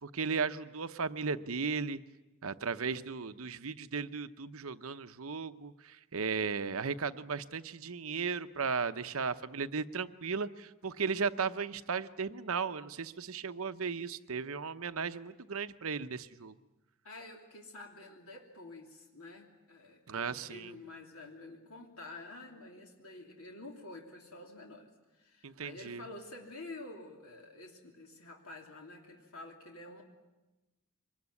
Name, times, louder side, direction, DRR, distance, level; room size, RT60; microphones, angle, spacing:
voice 1, 0.0-2.0 2.4-16.5 20.1-20.7 25.4-26.0, right 5 dB, 70° right, 11 dB, 0.9 m, -36 dB
voice 2, 17.0-30.0, left 2 dB, 80° left, 2 dB, 3.0 m, -49 dB
24.5 x 20.5 x 9.7 m, 1.1 s
head